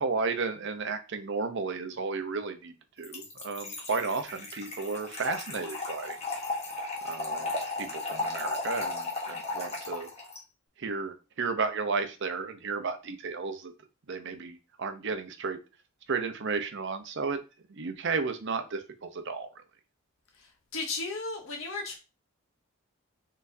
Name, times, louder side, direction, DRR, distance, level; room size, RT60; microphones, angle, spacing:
voice 1, 0.0-6.2 7.0-7.5 7.8-10.1 10.8-13.7 14.1-15.6 16.1-17.4 17.7-19.5, right 4 dB, 55° right, 8 dB, 0.6 m, -33 dB
Trickle dribble / Fill (with liquid), 3.0-10.4, left 3 dB, 30° left, 1.1 m, -35 dB
voice 2, 20.7-22.0, left 3 dB, 65° left, 3 dB, 0.8 m, -34 dB
4.3 x 4.0 x 2.6 m, 0.31 s
head